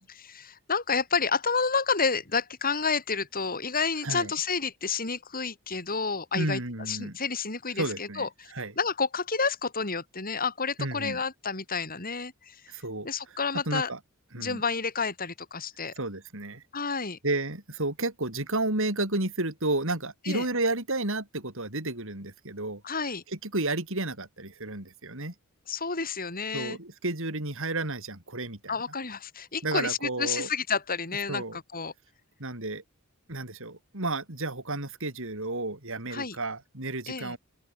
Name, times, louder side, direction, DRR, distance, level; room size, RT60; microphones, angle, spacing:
voice 1, 0.1-6.6 6.9-12.6 13.0-13.9 14.4-15.9 16.7-17.2 20.3-20.5 22.8-23.2 25.7-26.8 28.7-31.9 36.1-36.4 37.1-37.3, left 5 dB, 40° left, 5.8 m, -30 dB
voice 2, 6.3-7.2 7.8-8.7 10.8-11.2 12.7-13.4 13.7-14.0 14.3-14.6 16.0-16.6 17.2-22.8 23.3-25.3 26.5-28.7 29.6-30.5 31.3-31.6 32.4-32.8 33.3-37.4, right 2 dB, 60° right, 5.4 m, -32 dB
open air
head